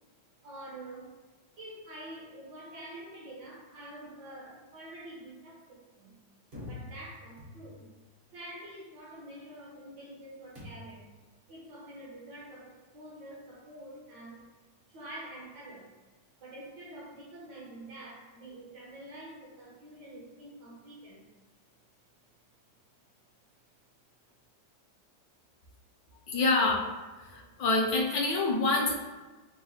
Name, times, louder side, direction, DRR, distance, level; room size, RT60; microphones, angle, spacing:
voice 1, 0.4-1.2 1.6-6.2 6.6-7.9 8.3-11.1 11.5-14.5 14.9-15.9 16.4-21.3, right 1 dB, 65° right, -4 dB, 1.5 m, -47 dB
sound 1, 6.5-8.0 10.6-11.1, left 2 dB, 40° right, 0.8 m, -46 dB
voice 2, 26.3-26.9 27.2-29.0, left 3 dB, 75° left, -1 dB, 1.2 m, -26 dB
5.9 x 2.1 x 2.7 m, 1.2 s
omnidirectional pair, 2.0 m